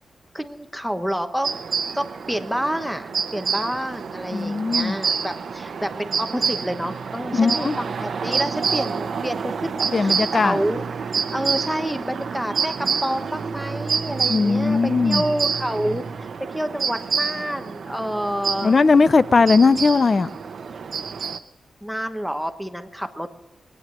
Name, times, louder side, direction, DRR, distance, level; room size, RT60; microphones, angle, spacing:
voice 1, 0.3-1.6 1.9-10.8 11.3-18.7 21.2-21.3 21.8-23.4, equal, ahead, 1.0 m, -28 dB
sound 1, 1.4-21.4, right 5 dB, 60° right, 0.8 m, -28 dB
voice 2, 4.3-4.9 7.3-7.8 9.9-10.6 14.3-15.2 18.6-20.3, left 4 dB, 35° left, 0.4 m, -18 dB
22.5 x 9.4 x 6.2 m
wide cardioid pair, 140°, 0 cm